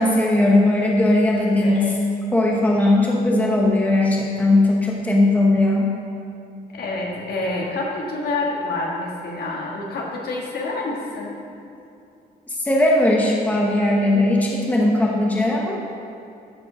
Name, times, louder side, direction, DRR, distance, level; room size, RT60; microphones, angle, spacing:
voice 1, 0.0-1.9 2.3-5.9 12.5-15.8, left 1 dB, 10° left, -2 dB, 1.0 m, -18 dB
voice 2, 1.6-1.9 6.7-11.4, left 2 dB, 70° left, -2 dB, 1.8 m, -27 dB
13.0 x 5.3 x 5.1 m, 2.6 s
wide cardioid pair, 150°, 17 cm